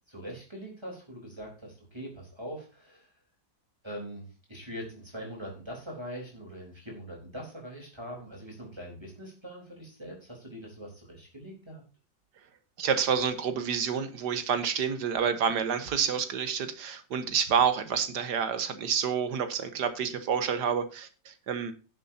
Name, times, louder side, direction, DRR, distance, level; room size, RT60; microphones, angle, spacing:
voice 1, 0.1-3.1 3.8-11.8, equal, 15° right, -2 dB, 3.9 m, -42 dB
voice 2, 12.8-21.7, right 7 dB, 70° right, 10 dB, 1.7 m, -28 dB
17.0 x 7.6 x 2.8 m, 0.33 s
omnidirectional pair, 1.9 m